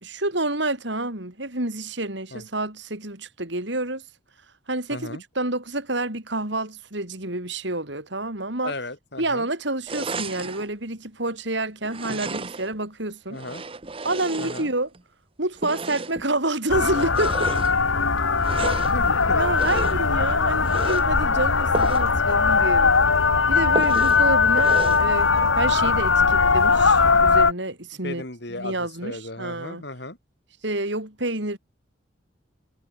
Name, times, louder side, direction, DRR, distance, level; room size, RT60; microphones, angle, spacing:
voice 1, 0.0-4.0 4.7-8.7 9.2-13.4 14.0-14.9 15.4-17.5 19.3-23.0 23.5-28.2 28.5-29.8 30.6-31.6, right 2 dB, 65° right, 4.6 m, -28 dB
voice 2, 4.9-5.2 8.6-9.5 13.3-13.6 14.4-14.7 18.8-19.4 19.8-20.1 24.0-24.3 28.0-30.2, left 2 dB, 55° left, 4.0 m, -35 dB
sound 1, 9.9-10.7 11.8-12.8 13.3-15.0 15.6-16.3 16.9-17.7 18.4-19.0 19.6-20.1 20.6-21.1 21.7-22.1 22.5-22.6 22.9-23.0 23.8-24.2 24.6-25.1, right 3 dB, 30° right, 0.9 m, -33 dB
sound 2, 16.7-27.5, left 4 dB, 80° left, 1.7 m, -20 dB
head